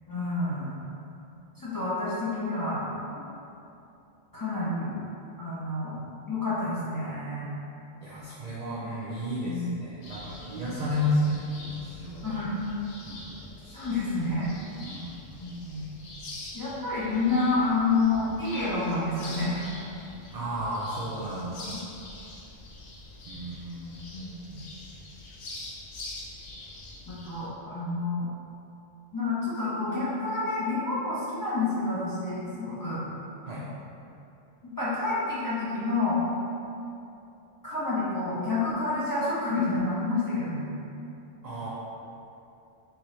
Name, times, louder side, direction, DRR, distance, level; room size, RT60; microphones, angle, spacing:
voice 1, 0.1-0.7 1.6-2.9 4.3-4.9 5.4-6.0 6.3-7.5 9.4-9.7 10.7-11.0 12.2-12.6 13.7-14.5 15.4-15.9 16.5-19.7 21.6-21.8 24.1-24.6 27.1-28.3 29.1-33.0 34.6-36.2 37.6-40.6, left 3 dB, 25° left, -11 dB, 0.5 m, -29 dB
voice 2, 8.0-12.4 13.1-13.3 14.8-15.2 20.3-21.7 23.2-24.1 33.4-33.6 41.4-41.7, left 1 dB, 65° right, -6 dB, 0.4 m, -32 dB
sound 1, 10.0-27.5, left 2 dB, 60° left, 0.8 m, -45 dB
3.7 x 3.0 x 3.1 m, 2.8 s
omnidirectional pair, 1.2 m